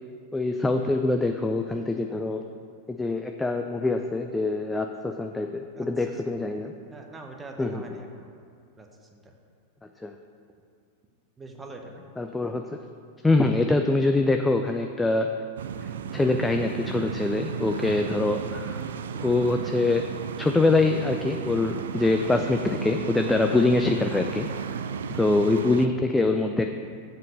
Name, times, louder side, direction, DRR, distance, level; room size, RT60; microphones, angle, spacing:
voice 1, 0.3-2.4 2.9-6.7 7.6-7.8 10.0-10.1 12.2-12.8 13.2-15.3 16.1-18.9 19.1-20.0 20.4-24.5 25.1-26.7, left 2 dB, 10° left, 5 dB, 0.4 m, -24 dB
voice 2, 5.7-6.4 6.9-8.3 8.8-9.3 11.4-12.1 24.9-25.0, right 2 dB, 15° right, 2 dB, 1.0 m, -44 dB
sound 1, 15.6-25.9, right 7 dB, 60° right, 0.3 m, -34 dB
7.4 x 5.3 x 6.5 m, 2.3 s
figure-of-eight pair, 90°, 0 cm